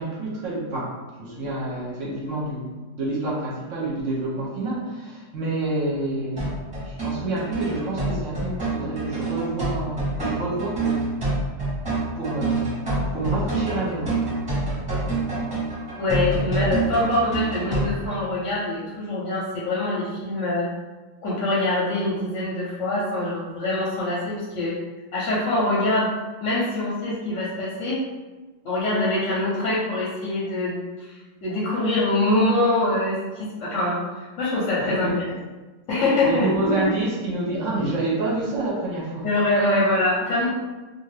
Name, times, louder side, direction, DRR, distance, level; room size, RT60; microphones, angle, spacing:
voice 1, 0.0-2.7 3.0-6.5 6.8-11.1 12.2-12.8 13.1-14.3 34.8-35.2 36.2-39.3, right 2 dB, 60° right, -5 dB, 0.9 m, -28 dB
sound 1, 6.4-17.8, right 2 dB, 20° right, 0.9 m, -26 dB
voice 2, 16.0-20.7 21.2-24.8 25.1-26.1 26.4-28.0 28.6-35.1 35.9-36.5 39.2-40.5, left 2 dB, 60° left, -6 dB, 0.9 m, -24 dB
2.5 x 2.5 x 3.2 m, 1.2 s
omnidirectional pair, 1.8 m